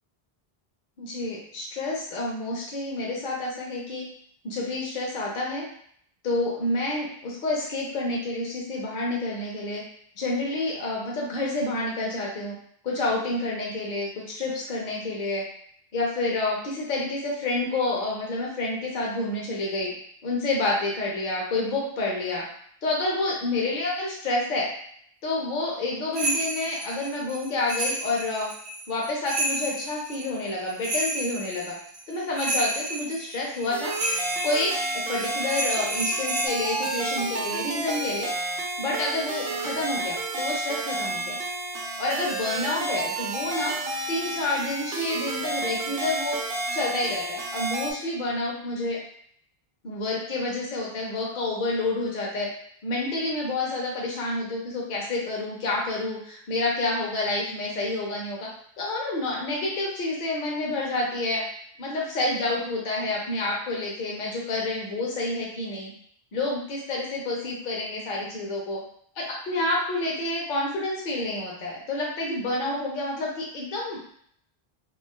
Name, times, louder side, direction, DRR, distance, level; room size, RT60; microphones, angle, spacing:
voice 1, 1.0-4.0 4.4-5.6 6.2-9.8 10.2-12.5 12.8-15.4 15.9-19.9 20.2-22.4 22.8-24.7 25.2-28.5 28.9-31.8 32.1-33.9 34.4-34.7 35.1-38.3 38.8-41.4 42.0-43.8 44.1-46.4 46.7-49.0 49.8-52.5 52.8-58.5 58.8-61.4 61.8-65.9 66.3-68.8 69.2-74.1, left 2 dB, 55° left, -3 dB, 0.8 m, -29 dB
sound 1, 26.1-36.5, right 1 dB, 50° right, 0.4 m, -31 dB
sound 2, 33.7-47.9, right 2 dB, 70° right, 0.7 m, -31 dB
3.6 x 2.1 x 2.2 m, 0.64 s
omnidirectional pair, 1.0 m